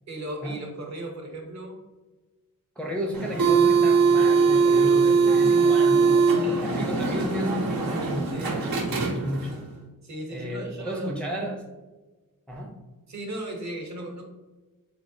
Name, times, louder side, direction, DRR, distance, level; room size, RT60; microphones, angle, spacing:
voice 1, 0.1-1.8 6.0-6.8 8.3-8.6 10.0-11.3 13.1-14.2, right 1 dB, 50° right, 1 dB, 0.8 m, -36 dB
voice 2, 2.8-6.2 6.6-9.6 10.3-11.6 12.5-12.8, equal, 5° left, -1 dB, 0.4 m, -33 dB
sound 1, 3.1-9.6, right 5 dB, 85° right, 0.7 m, -21 dB
3.4 x 3.2 x 2.6 m, 1.2 s
wide cardioid pair, 100°, 35 cm